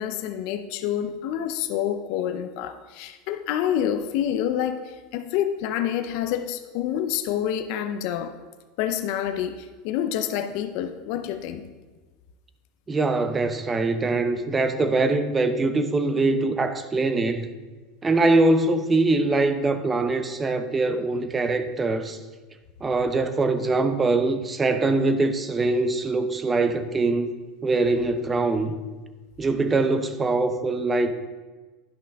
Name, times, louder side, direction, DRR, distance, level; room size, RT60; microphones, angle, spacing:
voice 1, 0.0-8.3 8.8-11.7, left 10 dB, 65° left, 8 dB, 0.5 m, -28 dB
voice 2, 12.9-17.5 18.0-22.2 22.8-27.3 27.6-28.7 29.4-31.1, right 3 dB, 20° right, 9 dB, 0.6 m, -23 dB
10.5 x 5.7 x 3.5 m, 1.3 s
supercardioid pair, 125°, 0 cm